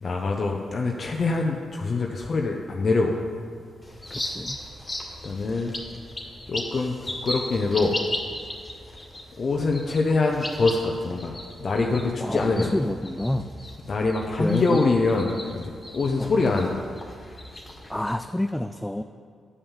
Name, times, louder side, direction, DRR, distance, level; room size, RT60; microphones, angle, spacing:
voice 1, 0.0-3.2 5.2-5.7 6.5-7.9 9.4-11.3 11.6-12.7 13.9-16.8, left 3 dB, 50° left, 1 dB, 0.8 m, -24 dB
sound 1, 3.8-18.1, left 1 dB, 25° left, 2.1 m, -37 dB
voice 2, 4.1-4.6 12.2-13.5 14.4-14.8 16.2-16.3 17.9-19.0, left 1 dB, 10° left, 8 dB, 0.4 m, -28 dB
9.7 x 5.5 x 7.2 m, 2.1 s
supercardioid pair, 50°, 0 cm